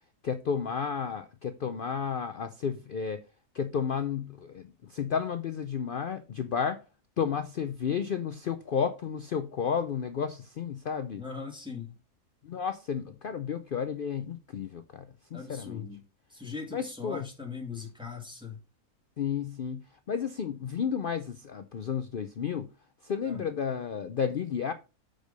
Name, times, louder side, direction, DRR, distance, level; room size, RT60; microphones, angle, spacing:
voice 1, 0.2-3.2 3.5-6.8 7.2-11.2 12.4-15.1 15.3-15.8 16.7-17.3 19.2-22.7 23.0-24.7, left 7 dB, 80° left, 0.4 m, -32 dB
voice 2, 11.2-11.9 15.3-16.0 16.3-18.6 23.2-23.5, left 5 dB, 5° right, 1.8 m, -40 dB
6.4 x 5.1 x 5.1 m
omnidirectional pair, 1.6 m